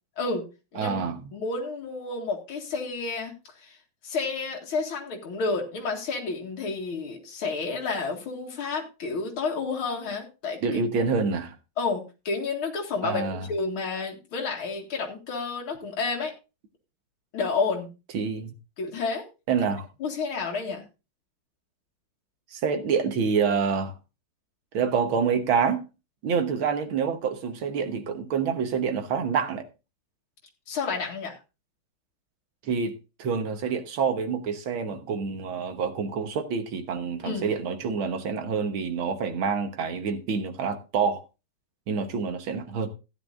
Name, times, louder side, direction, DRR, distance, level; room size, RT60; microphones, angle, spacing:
voice 1, 0.8-1.2 10.6-11.6 13.0-13.5 18.1-18.5 19.5-19.9 22.5-23.9 24.7-25.8 26.2-29.7 32.6-41.2 41.9-42.9, right 6 dB, 75° right, 2.0 m, -27 dB
voice 2, 1.3-3.3 3.6-3.8 4.0-10.6 11.8-16.3 17.3-17.9 18.8-19.2 20.0-20.8 30.7-31.4 37.2-37.4, left 4 dB, 80° left, 2.7 m, -30 dB
15.0 x 9.5 x 2.5 m
omnidirectional pair, 2.3 m